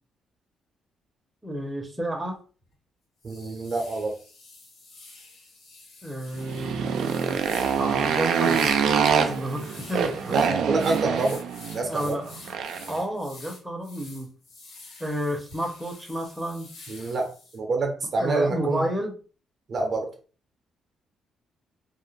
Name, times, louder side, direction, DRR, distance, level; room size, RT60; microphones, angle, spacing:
voice 1, 1.4-2.4 6.0-7.4 7.8-10.4 11.9-12.6 12.9-14.3 15.0-16.7 18.2-19.1, equal, 10° right, 2 dB, 0.7 m, -31 dB
sound 1, 2.6-2.7 3.2-17.6, left 3 dB, 80° left, 1.3 m, -48 dB
voice 2, 3.2-4.2 10.3-11.4 11.7-12.2 16.9-18.9 19.7-20.1, right 3 dB, 45° right, 3 dB, 0.6 m, -26 dB
Motorcycle, 6.4-13.0, right 7 dB, 80° right, 0.3 m, -25 dB
2.4 x 2.0 x 3.1 m, 0.38 s
cardioid pair, 90°, 0 cm